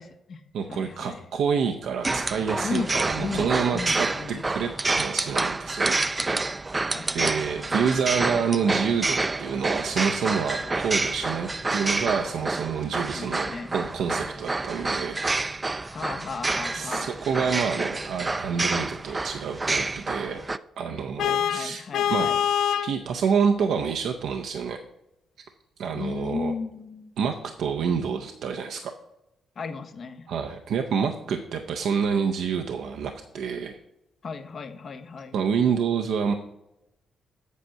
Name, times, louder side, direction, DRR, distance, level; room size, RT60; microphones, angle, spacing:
voice 1, 0.0-0.4 0.7-1.2 2.6-4.4 6.9-7.4 13.1-13.8 15.9-17.1 21.2-22.4 25.9-27.1 29.6-30.3 34.2-35.4, left 4 dB, 60° left, 8 dB, 0.9 m, -35 dB
voice 2, 0.5-6.0 7.1-15.3 16.7-20.4 20.8-21.8 22.1-22.3 22.8-24.8 25.8-26.5 27.2-28.9 30.3-33.8 35.3-36.3, right 6 dB, 75° right, 4 dB, 0.6 m, -28 dB
sound 1, 2.0-20.6, right 3 dB, 30° right, 0.4 m, -28 dB
Vehicle horn car horn honking, 21.2-23.0, left 9 dB, 75° left, 0.3 m, -24 dB
8.3 x 4.4 x 6.4 m, 0.87 s
supercardioid pair, 55°, 0 cm